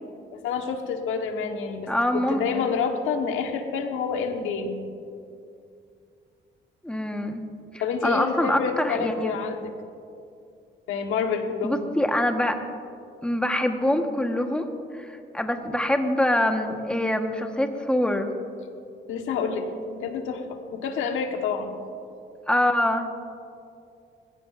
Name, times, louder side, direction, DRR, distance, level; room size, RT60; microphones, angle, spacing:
voice 1, 0.3-4.8 7.8-9.7 10.9-11.8 19.1-21.8, left 5 dB, 90° left, 4 dB, 1.4 m, -28 dB
voice 2, 1.9-2.6 6.8-7.4 8.0-9.3 11.6-12.6 13.2-14.7 14.9-18.3 22.5-23.1, left 1 dB, 5° left, 4 dB, 1.3 m, -24 dB
20.5 x 16.0 x 2.6 m, 2.4 s
cardioid pair, 90°, 20 cm